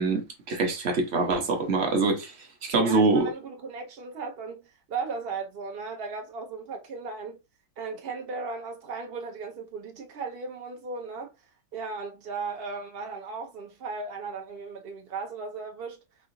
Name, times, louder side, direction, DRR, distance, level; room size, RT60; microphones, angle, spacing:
voice 1, 0.0-2.3 2.6-3.3, right 3 dB, 50° right, 0.8 m, -24 dB
voice 2, 2.7-7.4 7.8-11.3 11.7-16.0, right 4 dB, 85° right, 0.5 m, -36 dB
4.7 x 2.7 x 2.5 m
omnidirectional pair, 2.1 m